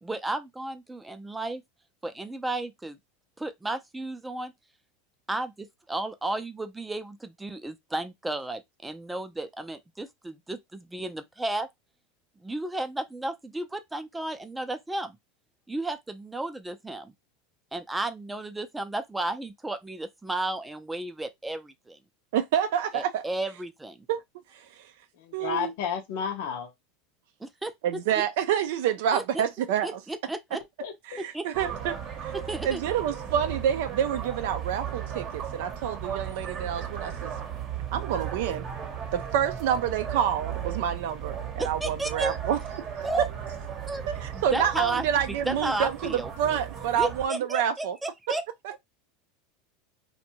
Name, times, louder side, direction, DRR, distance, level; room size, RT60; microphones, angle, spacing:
voice 1, 0.0-1.6 2.0-3.0 3.4-4.5 5.3-11.7 12.4-15.1 15.7-17.1 17.7-22.0 22.9-24.1 27.4-27.7 28.2-28.3 29.1-29.4 29.8-30.6 31.3-31.6 32.3-32.8 41.6-42.4 43.0-43.3 43.9-44.0 44.3-46.3 46.9-48.4, right 2 dB, 10° right, 0.4 m, -33 dB
voice 2, 22.3-23.2 24.1-24.2 24.5-24.7 25.3-25.7 27.8-30.0 31.1-32.3 32.6-37.3 37.9-38.7 39.1-42.9 43.2-43.3 44.1-48.0, right 9 dB, 75° right, 0.3 m, -28 dB
voice 3, 25.2-26.7 30.8-31.2, left 7 dB, 70° left, 0.6 m, -32 dB
sound 1, 31.5-47.3, right 8 dB, 40° right, 0.8 m, -36 dB
2.6 x 2.2 x 2.8 m
supercardioid pair, 120°, 0 cm